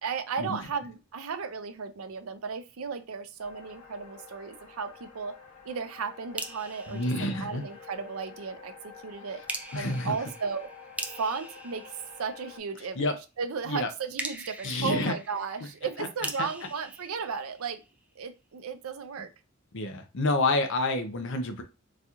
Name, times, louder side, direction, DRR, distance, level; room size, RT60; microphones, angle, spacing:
voice 1, 0.0-5.3 5.6-9.4 9.7-10.7 11.1-11.9 12.2-13.1 13.4-17.8 18.2-19.3, right 5 dB, 80° right, 0.5 m, -35 dB
sound 1, 3.4-12.6, left 5 dB, 90° left, 0.8 m, -49 dB
sound 2, 6.4-8.1 9.5-12.8 14.2-18.1, right 2 dB, 5° right, 0.3 m, -42 dB
voice 2, 6.9-7.6 9.7-10.1 13.0-13.1 13.7-13.9 14.6-15.1 16.0-16.1 16.4-16.5 19.7-21.6, left 2 dB, 60° left, 0.6 m, -28 dB
4.0 x 2.3 x 2.9 m
head